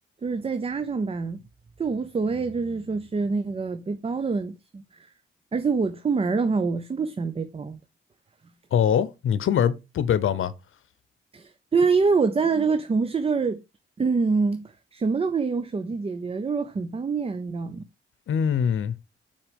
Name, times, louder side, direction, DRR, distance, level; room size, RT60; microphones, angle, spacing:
voice 1, 0.2-1.4 1.8-5.1 5.5-7.8 11.3-13.6 14.0-17.8, right 4 dB, 30° right, 0.5 m, -25 dB
voice 2, 8.7-10.5 18.3-18.9, left 8 dB, 75° left, 0.8 m, -23 dB
6.0 x 4.3 x 5.2 m
wide cardioid pair, 120°, 21 cm